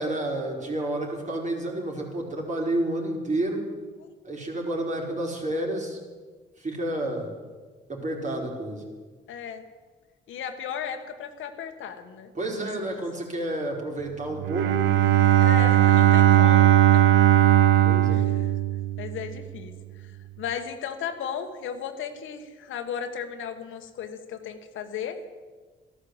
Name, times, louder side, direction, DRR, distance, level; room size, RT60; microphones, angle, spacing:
voice 1, 0.0-3.6 4.2-6.0 6.6-7.4 7.9-8.8 12.3-14.7 17.8-18.3, right 1 dB, 35° right, 0 dB, 4.4 m, -30 dB
voice 2, 9.3-9.6 10.3-12.3 12.6-12.9 15.4-17.0 18.1-18.5 19.0-25.2, left 8 dB, 80° left, 7 dB, 1.5 m, -35 dB
Bowed string instrument, 14.3-19.3, right 13 dB, 85° right, 0.8 m, -18 dB
13.5 x 12.5 x 8.0 m, 1.4 s
cardioid pair, 90°, 20 cm